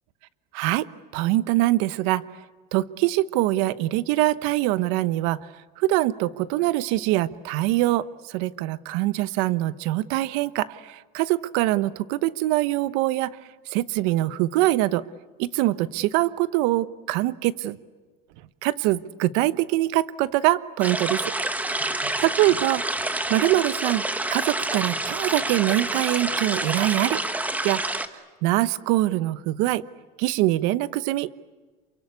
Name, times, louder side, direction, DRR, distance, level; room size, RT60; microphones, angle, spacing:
voice 1, 0.5-2.2 2.7-5.4 5.8-13.4 13.7-15.0 15.4-17.8 18.6-21.2 22.2-24.0 24.3-27.2 27.6-27.8 28.4-29.8 30.2-31.3, right 16 dB, 70° right, 16 dB, 1.0 m, -23 dB
sound 1, 20.8-28.1, right 2 dB, 5° right, 1.3 m, -28 dB
28.0 x 24.0 x 8.4 m, 1.4 s
cardioid pair, 140°, 21 cm